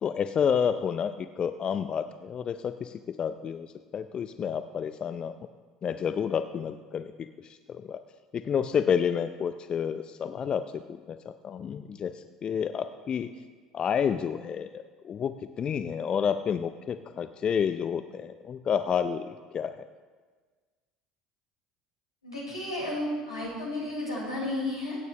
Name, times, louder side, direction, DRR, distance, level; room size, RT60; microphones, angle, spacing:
voice 1, 0.0-5.3 5.8-8.0 8.3-13.3 13.7-19.8, left 7 dB, 35° left, 10 dB, 0.5 m, -30 dB
voice 2, 22.2-25.0, left 1 dB, 85° left, -7 dB, 5.1 m, -32 dB
24.5 x 9.3 x 3.3 m, 1.4 s
figure-of-eight pair, 65°, 3 cm